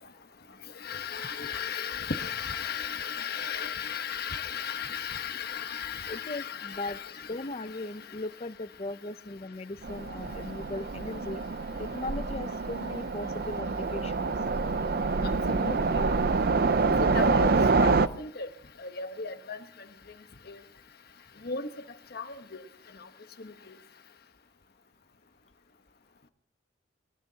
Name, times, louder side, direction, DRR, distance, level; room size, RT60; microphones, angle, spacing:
voice 1, 0.8-7.5 15.2-16.0 17.0-18.5 18.8-19.6 20.5-20.6 21.4-21.7 22.1-22.6 23.4-23.7, left 6 dB, 50° left, 1.2 m, -35 dB
voice 2, 6.1-7.0 7.3-11.4 11.8-14.3, left 2 dB, 30° left, 0.6 m, -38 dB
Train, 9.8-18.1, right 4 dB, 50° right, 0.6 m, -26 dB
23.5 x 18.5 x 2.9 m
head